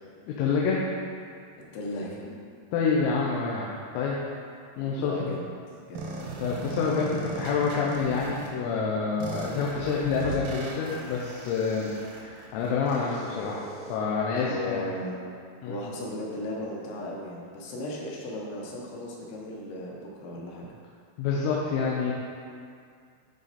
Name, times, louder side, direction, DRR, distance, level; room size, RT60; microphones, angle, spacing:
voice 1, 0.3-0.8 2.7-4.2 4.8-5.4 6.4-14.8 15.6-15.8 21.2-22.1, left 5 dB, 90° left, -4 dB, 3.4 m, -28 dB
voice 2, 1.7-2.4 5.0-5.5 5.9-6.1 7.6-7.7 14.3-15.2 15.7-20.7, left 1 dB, 75° left, -3 dB, 3.1 m, -36 dB
sound 1, 6.0-8.5 9.2-14.0, right 3 dB, 80° right, 2.1 m, -38 dB
12.0 x 4.1 x 4.2 m, 2.2 s
omnidirectional pair, 5.7 m